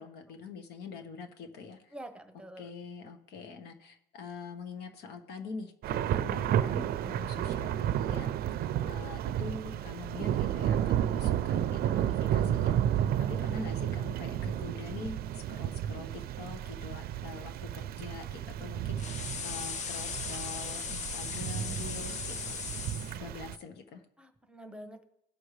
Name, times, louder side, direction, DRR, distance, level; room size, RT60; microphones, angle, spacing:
voice 1, 0.0-1.9 2.6-8.3 8.6-22.6 23.1-24.0, left 4 dB, 75° left, 6 dB, 1.3 m, -45 dB
voice 2, 1.9-2.7 23.2-23.3 24.2-25.0, right 1 dB, 5° right, 7 dB, 1.0 m, -47 dB
Thunder / Rain, 5.8-23.5, right 10 dB, 65° right, 0.5 m, -32 dB
sound 1, 19.0-23.2, left 7 dB, 45° left, 0.6 m, -38 dB
18.0 x 6.3 x 3.2 m, 0.78 s
cardioid pair, 110°, 17 cm